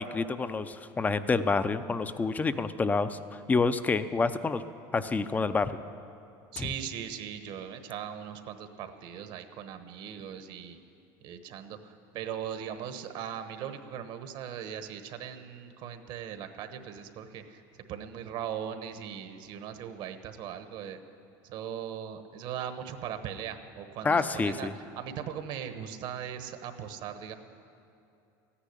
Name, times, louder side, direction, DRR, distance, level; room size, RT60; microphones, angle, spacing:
voice 1, 0.0-3.2 3.5-4.6 4.9-5.8 6.6-6.7 24.0-24.7, left 4 dB, 15° left, 12 dB, 0.6 m, -28 dB
voice 2, 6.5-10.8 11.2-21.0 21.4-27.3, right 9 dB, 60° right, 9 dB, 1.2 m, -39 dB
14.0 x 10.0 x 10.0 m, 2.7 s
supercardioid pair, 125°, 10 cm